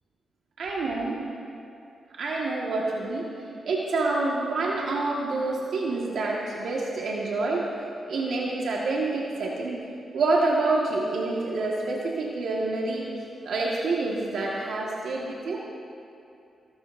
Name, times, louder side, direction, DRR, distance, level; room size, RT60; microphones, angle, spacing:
voice 1, 0.6-1.2 2.2-3.3 3.6-7.7 8.1-9.8 10.1-13.1 13.4-15.6, right 3 dB, 75° right, -3 dB, 1.6 m, -27 dB
26.0 x 12.0 x 2.6 m, 2.6 s
cardioid pair, 85°, 0 cm